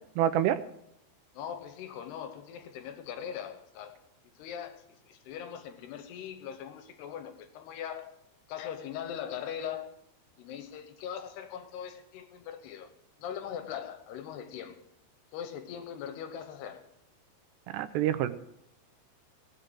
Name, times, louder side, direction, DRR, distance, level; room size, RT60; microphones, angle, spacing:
voice 1, 0.2-0.6 17.7-18.3, right 11 dB, 80° right, 2.7 m, -26 dB
voice 2, 1.3-4.0 4.4-8.1 8.5-9.9 10.4-12.9 13.2-14.8 15.3-16.9, left 9 dB, 75° left, 2.9 m, -40 dB
17.0 x 6.5 x 7.9 m
omnidirectional pair, 5.0 m